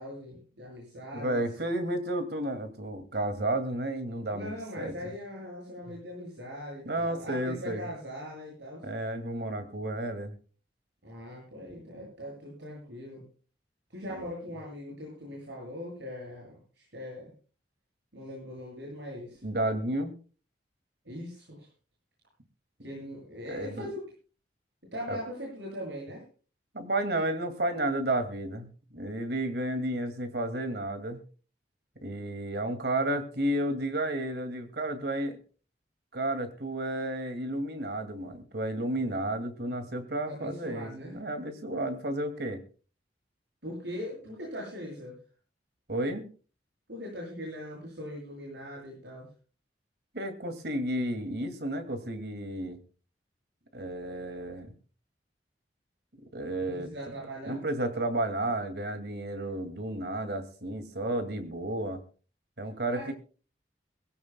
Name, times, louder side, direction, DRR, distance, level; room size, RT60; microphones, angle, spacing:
voice 1, 0.0-1.4 4.3-8.8 11.0-13.3 13.9-17.3 18.1-19.4 21.0-21.7 22.8-24.1 24.9-26.2 40.2-41.1 43.6-45.2 46.9-49.3 56.6-57.6 62.9-63.1, equal, 85° right, -2 dB, 7.9 m, -40 dB
voice 2, 1.1-4.9 6.9-7.9 8.8-10.3 14.1-14.2 19.4-20.1 23.5-23.9 25.1-25.2 26.7-31.2 32.0-35.4 36.1-42.6 45.9-46.3 50.1-52.8 53.7-54.7 56.3-56.9 57.5-62.0 62.6-63.1, right 1 dB, 65° right, 9 dB, 2.4 m, -32 dB
22.5 x 16.0 x 2.3 m, 0.37 s
head